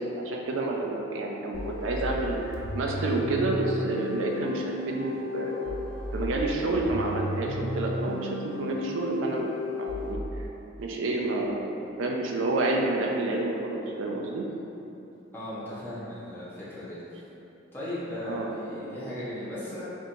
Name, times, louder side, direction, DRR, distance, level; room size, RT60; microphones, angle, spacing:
voice 1, 0.0-5.7 6.1-9.5 9.8-10.5 10.8-14.4 18.2-18.5, right 2 dB, 75° right, 0 dB, 0.4 m, -29 dB
sound 1, 1.5-10.1, left 1 dB, 80° left, 0.5 m, -34 dB
voice 2, 15.3-17.0 17.7-19.8, left 1 dB, 10° left, -10 dB, 0.9 m, -36 dB
4.2 x 3.0 x 2.6 m, 2.9 s
head